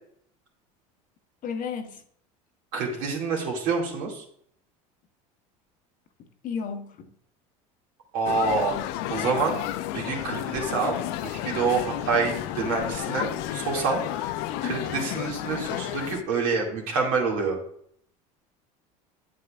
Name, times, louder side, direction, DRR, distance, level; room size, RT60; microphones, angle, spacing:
voice 1, 1.4-2.0 6.2-7.1 14.6-14.7, left 6 dB, 50° left, 8 dB, 0.9 m, -33 dB
voice 2, 2.7-4.2 8.1-8.8 9.1-9.6 9.9-14.3 14.6-17.6, right 4 dB, 75° right, -1 dB, 2.2 m, -27 dB
sound 1, 8.3-16.2, left 13 dB, 65° left, 0.5 m, -32 dB
8.3 x 7.6 x 2.4 m, 0.67 s
hypercardioid pair, 85°, 18 cm